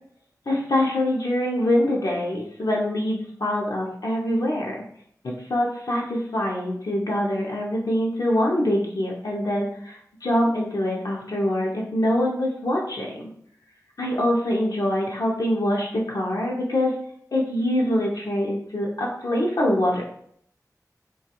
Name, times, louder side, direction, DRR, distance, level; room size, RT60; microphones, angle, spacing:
voice 1, 0.5-4.8 5.2-13.2 14.0-17.0 17.3-20.0, left 1 dB, 70° left, -2 dB, 0.5 m, -24 dB
2.3 x 2.3 x 2.8 m, 0.66 s
wide cardioid pair, 65°, 7 cm